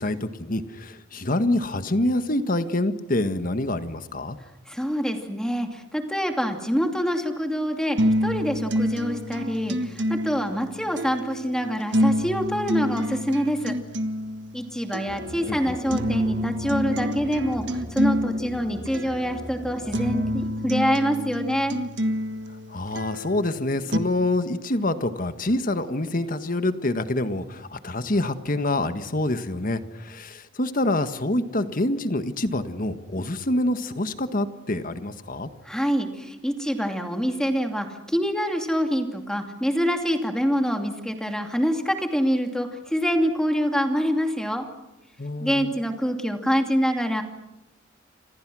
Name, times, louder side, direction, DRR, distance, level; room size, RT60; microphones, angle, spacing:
voice 1, 0.0-4.4 15.5-16.0 22.7-35.5 45.2-45.8, left 1 dB, 45° left, 10 dB, 1.6 m, -26 dB
voice 2, 4.7-13.8 14.5-21.8 35.6-44.7 45.4-47.2, equal, 5° left, 4 dB, 2.5 m, -25 dB
sound 1, 8.0-24.0, equal, 65° right, 1.6 m, -28 dB
sound 2, 15.1-20.3, equal, 25° right, 1.9 m, -40 dB
30.0 x 26.5 x 6.3 m, 0.90 s
head